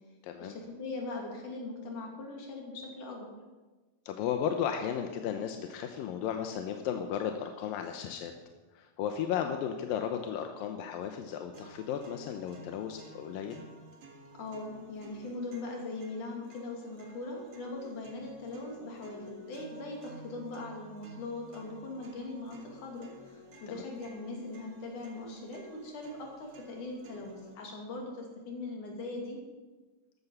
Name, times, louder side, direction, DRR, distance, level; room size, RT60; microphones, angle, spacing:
voice 1, 0.4-3.3 14.4-29.4, left 2 dB, 65° left, 0 dB, 4.1 m, -40 dB
voice 2, 4.1-8.3 8.7-13.6 23.7-23.8, left 8 dB, 90° left, 5 dB, 2.6 m, -34 dB
sound 1, 11.5-27.5, equal, 50° right, 3.3 m, -53 dB
14.0 x 12.5 x 5.6 m, 1.3 s
omnidirectional pair, 4.0 m